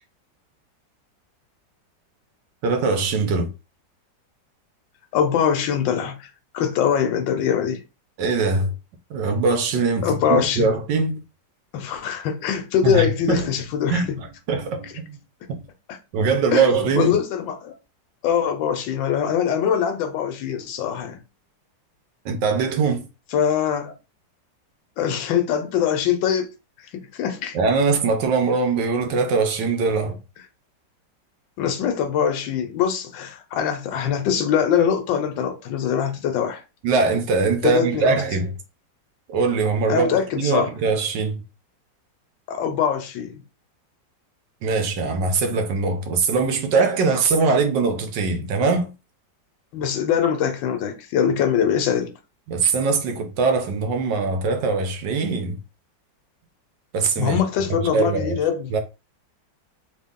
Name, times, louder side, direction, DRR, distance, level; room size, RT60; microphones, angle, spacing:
voice 1, 2.6-3.5 8.2-8.7 9.1-11.2 12.8-13.5 13.9-15.2 15.5-15.6 16.1-17.2 22.2-23.1 27.5-30.2 36.8-38.6 39.3-41.4 44.6-48.9 52.5-55.6 56.9-57.4 57.9-58.4 58.7-58.8, right 4 dB, 75° right, 1.3 m, -22 dB
voice 2, 5.1-6.3 6.5-7.8 10.0-10.7 11.7-14.2 15.9-16.0 16.5-16.7 16.9-17.7 18.2-21.2 23.3-23.9 25.0-26.5 26.9-27.6 31.6-36.6 37.6-38.2 39.9-40.7 42.5-43.4 49.7-52.1 57.2-58.7, left 8 dB, 80° left, 1.4 m, -23 dB
3.6 x 2.3 x 3.6 m
omnidirectional pair, 2.0 m